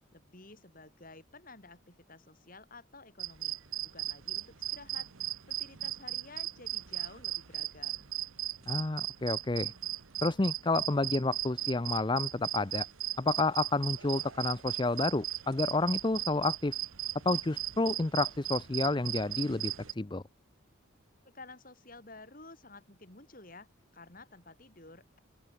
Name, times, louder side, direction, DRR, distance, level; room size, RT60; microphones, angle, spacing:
voice 1, 0.1-3.6 3.8-5.1 5.5-8.1 21.2-23.7 23.9-25.2, left 3 dB, 40° left, 5.0 m, -52 dB
sound 1, 3.2-19.9, right 14 dB, 80° right, 1.1 m, -37 dB
voice 2, 8.7-9.7 10.2-12.9 13.2-16.8 17.2-20.2, left 2 dB, 20° left, 0.6 m, -30 dB
open air
head